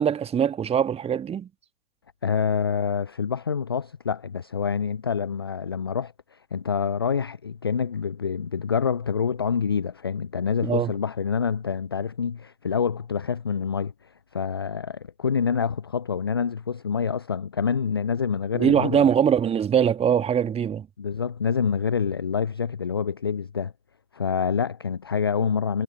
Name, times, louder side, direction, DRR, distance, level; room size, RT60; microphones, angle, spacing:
voice 1, 0.0-1.5 10.6-10.9 18.5-20.9, right 8 dB, 10° right, 1.7 m, -22 dB
voice 2, 2.2-19.1 21.0-23.7 24.1-25.8, left 6 dB, 15° left, 0.4 m, -27 dB
figure-of-eight pair, 110°, 48 cm